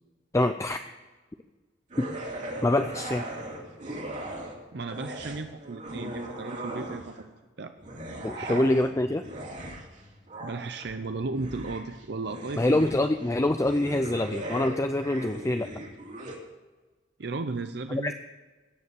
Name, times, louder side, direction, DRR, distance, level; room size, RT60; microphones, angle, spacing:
voice 1, 0.3-0.9 2.0-2.1 2.6-3.2 8.2-9.3 12.6-15.7 17.9-18.1, left 1 dB, 15° left, 8 dB, 0.5 m, -25 dB
sound 1, 1.9-4.6 4.9-7.3 7.8-16.4, right 1 dB, 45° right, 2.8 m, -39 dB
voice 2, 4.7-7.7 8.3-8.6 10.4-12.9 17.2-18.1, right 3 dB, 65° right, 8 dB, 0.7 m, -35 dB
17.0 x 6.8 x 6.9 m, 1.3 s
head